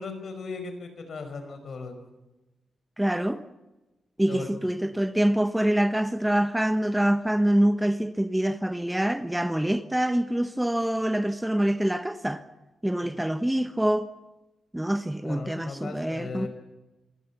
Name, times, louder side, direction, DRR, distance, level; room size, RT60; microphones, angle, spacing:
voice 1, 0.0-1.9 4.3-4.5 13.0-13.2 15.2-16.5, left 4 dB, 60° left, 5.3 m, -37 dB
voice 2, 3.0-3.4 4.2-12.4 12.8-14.1 14.7-16.5, right 1 dB, 5° right, 1.0 m, -25 dB
26.0 x 17.0 x 7.1 m
cardioid pair, 95°, 0 cm